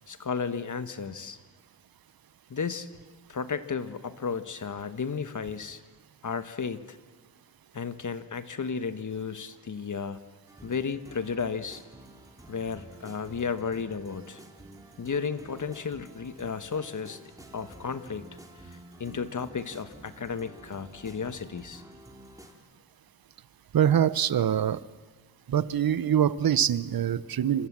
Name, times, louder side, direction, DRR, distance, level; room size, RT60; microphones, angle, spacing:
voice 1, 0.1-1.4 2.5-2.9 3.3-5.8 6.2-7.0 7.7-10.2 10.6-11.8 12.5-14.4 15.0-17.2 17.5-18.4 18.6-21.8, left 5 dB, 45° left, 11 dB, 1.4 m, -33 dB
sound 1, 10.5-22.5, right 1 dB, 10° right, 3.0 m, -50 dB
voice 2, 23.7-24.8 25.5-27.7, right 9 dB, 60° right, 17 dB, 0.8 m, -24 dB
29.5 x 26.0 x 7.5 m, 1.5 s
wide cardioid pair, 115°, 40 cm